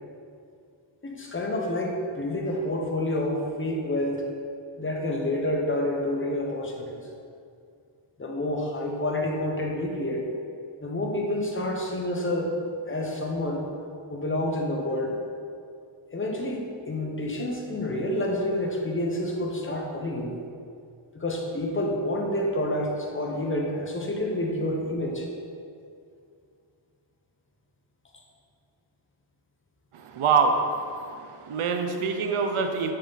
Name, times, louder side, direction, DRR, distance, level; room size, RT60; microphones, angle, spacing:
voice 1, 1.0-4.3 4.8-7.1 8.2-10.3 10.8-12.6 12.9-13.7 14.1-15.2 16.1-16.6 16.8-20.3 21.1-25.3, left 1 dB, 25° left, 0 dB, 1.1 m, -28 dB
voice 2, 30.1-30.6 31.4-32.9, right 5 dB, 80° right, 5 dB, 0.9 m, -24 dB
7.6 x 6.3 x 4.2 m, 2.4 s
wide cardioid pair, 120°, 50 cm